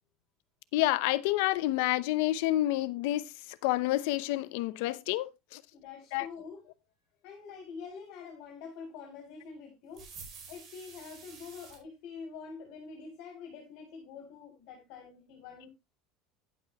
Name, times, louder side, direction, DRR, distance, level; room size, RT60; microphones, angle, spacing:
voice 1, 0.7-3.3 3.6-5.6 6.1-6.3, left 16 dB, 80° left, 0.8 m, -29 dB
voice 2, 5.7-6.6 7.2-10.0 10.5-15.7, left 5 dB, 60° left, 3.4 m, -46 dB
sound 1, 9.9-11.8, right 5 dB, 35° right, 4.6 m, -49 dB
11.0 x 8.6 x 3.0 m
cardioid pair, 155°, 0 cm